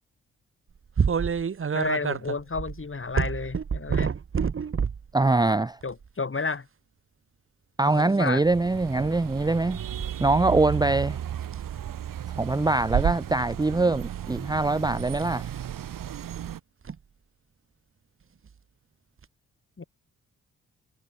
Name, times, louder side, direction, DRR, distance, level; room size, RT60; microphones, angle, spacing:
sound 1, 1.0-5.1 5.8-6.1 7.9-8.3 10.0-10.1 10.6-11.0 11.4-11.7 13.1-13.5 15.1-15.3 16.8-17.0 18.5-18.6 19.2-19.3, right 6 dB, 40° right, 1.2 m, -28 dB
voice 1, 1.7-4.1 5.8-6.7 7.9-8.4 19.8-19.9, left 4 dB, 40° left, 6.9 m, -31 dB
voice 2, 5.1-5.8 7.8-9.8 10.2-11.2 12.4-15.5, right 2 dB, 10° right, 0.7 m, -23 dB
sound 2, 8.4-16.6, right 10 dB, 75° right, 3.9 m, -33 dB
supercardioid pair, 50°, 33 cm